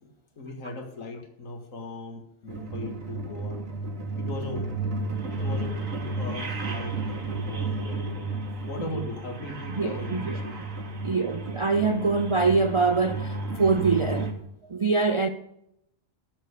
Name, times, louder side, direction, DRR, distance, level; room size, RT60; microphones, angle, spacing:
voice 1, 0.0-3.6 4.2-4.7 5.3-8.3 8.7-10.6, left 2 dB, 80° left, 2.1 m, -39 dB
sound 1, 2.5-14.3, right 3 dB, 75° right, 2.0 m, -32 dB
voice 2, 9.8-10.4 11.0-14.3 14.7-15.3, right 4 dB, 45° right, 0.4 m, -24 dB
12.5 x 6.7 x 8.3 m
omnidirectional pair, 1.4 m